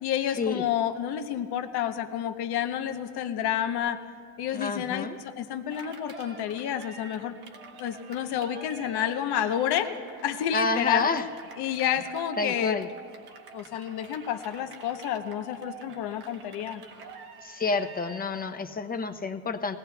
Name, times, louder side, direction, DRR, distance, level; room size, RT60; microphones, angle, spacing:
voice 1, 0.0-4.0 4.4-7.3 7.8-9.9 10.2-11.1 11.6-12.8 13.5-16.8, left 10 dB, 80° left, 7 dB, 0.9 m, -30 dB
voice 2, 4.5-5.2 10.5-11.2 12.4-12.9 17.4-19.8, left 4 dB, 25° left, 6 dB, 0.7 m, -29 dB
Cheering, 5.7-18.4, right 2 dB, 70° right, 1.4 m, -46 dB
21.5 x 18.0 x 2.3 m, 2.3 s
cardioid pair, 110°, 39 cm